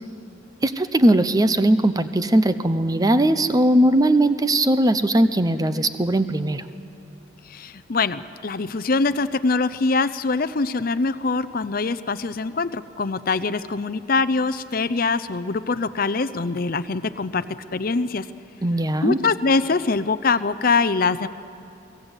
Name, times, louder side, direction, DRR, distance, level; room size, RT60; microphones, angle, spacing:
voice 1, 0.6-6.6 18.6-19.2, right 1 dB, 20° right, 11 dB, 0.7 m, -19 dB
voice 2, 7.5-17.5 17.7-18.3 19.0-21.3, left 4 dB, 50° left, 12 dB, 0.6 m, -23 dB
24.0 x 16.5 x 8.3 m, 2.7 s
head